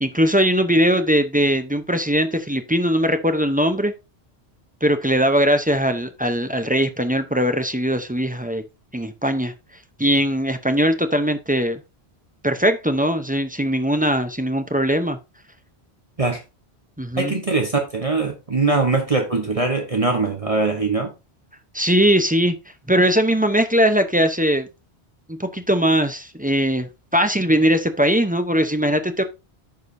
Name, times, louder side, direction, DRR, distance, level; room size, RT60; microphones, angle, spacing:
voice 1, 0.0-3.9 4.8-8.6 8.9-9.5 10.0-11.8 12.4-15.2 17.0-17.3 21.7-22.6 22.9-24.7 25.3-29.2, equal, 10° right, 0.5 m, -20 dB
voice 2, 17.2-21.1, right 3 dB, 35° right, 1.1 m, -21 dB
14.0 x 4.9 x 2.6 m
omnidirectional pair, 1.1 m